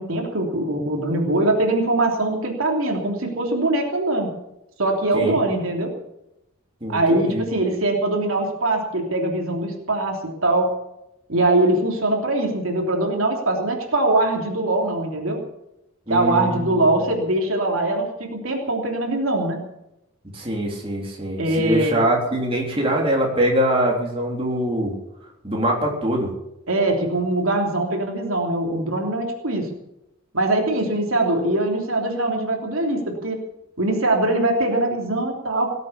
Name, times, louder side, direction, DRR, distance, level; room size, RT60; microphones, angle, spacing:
voice 1, 0.0-4.3 4.8-5.9 6.9-10.7 11.3-15.4 16.1-19.6 21.4-22.0 26.7-29.7 30.3-33.4 33.8-35.7, right 2 dB, 85° right, 1 dB, 3.1 m, -22 dB
voice 2, 6.8-7.5 16.1-16.7 20.3-25.0 25.4-26.3, right 1 dB, 25° right, -2 dB, 3.5 m, -23 dB
18.5 x 8.2 x 8.3 m, 0.87 s
head